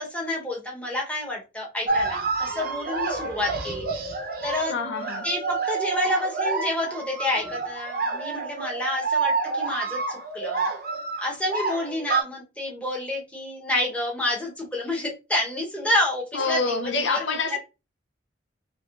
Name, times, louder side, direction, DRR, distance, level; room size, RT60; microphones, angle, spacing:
voice 1, 0.0-4.1 4.4-4.7 5.2-10.6 11.2-17.6, left 1 dB, 5° left, 0.9 m, -29 dB
sound 1, 1.9-12.2, right 4 dB, 50° right, 0.6 m, -28 dB
voice 2, 4.7-5.3 16.3-17.6, left 4 dB, 70° left, 0.6 m, -26 dB
3.4 x 3.1 x 2.4 m
head